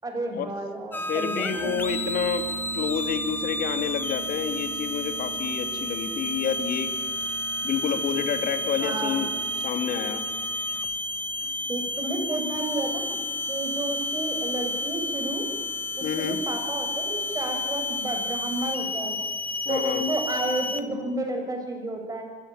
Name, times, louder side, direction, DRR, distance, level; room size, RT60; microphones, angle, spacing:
voice 1, 0.0-1.8 8.8-9.2 11.4-13.2 13.5-15.5 15.9-19.2 19.7-22.2, right 1 dB, 20° right, 4 dB, 6.6 m, -31 dB
sound 1, 0.9-20.8, left 2 dB, 10° left, 1.9 m, -31 dB
voice 2, 1.1-2.5 2.7-6.9 7.6-9.3 9.6-10.2 16.0-16.4 19.6-20.1, left 7 dB, 65° left, 8 dB, 3.0 m, -29 dB
sound 2, 1.5-10.8, right 15 dB, 90° right, 5.8 m, -41 dB
25.0 x 16.0 x 9.0 m, 1.4 s
cardioid pair, 110°, 17 cm